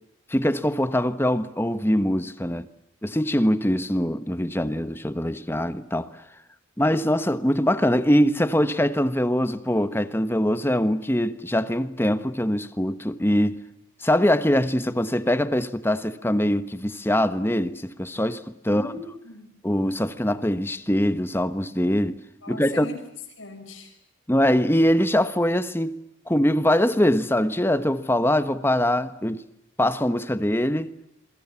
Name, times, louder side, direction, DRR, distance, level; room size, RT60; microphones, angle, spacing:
voice 1, 0.3-2.7 3.0-6.1 6.8-13.6 14.0-18.9 19.6-22.2 22.5-22.9 24.3-26.0 26.3-29.4 29.8-30.9, equal, 10° left, 1.2 m, -23 dB
voice 2, 18.7-19.5 22.4-23.0 23.4-24.0, left 2 dB, 75° left, 5.9 m, -39 dB
27.0 x 24.0 x 7.2 m
head